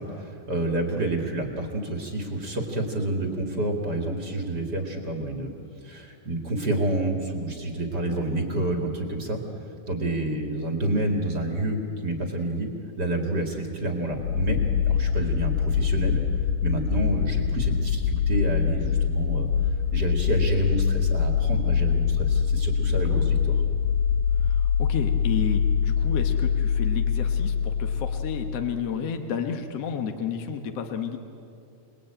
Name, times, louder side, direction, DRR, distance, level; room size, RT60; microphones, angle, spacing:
voice 1, 0.0-5.5 5.8-9.4 9.9-12.7 13.0-14.6 14.9-16.2 16.6-19.5 19.9-23.6, right 1 dB, 35° right, 2 dB, 2.1 m, -28 dB
voice 2, 8.1-8.4 22.9-23.2 24.4-31.2, left 7 dB, 65° left, 5 dB, 1.6 m, -32 dB
sound 1, 14.1-28.9, left 7 dB, 80° left, 2.7 m, -24 dB
28.5 x 20.0 x 8.9 m, 2.6 s
omnidirectional pair, 4.5 m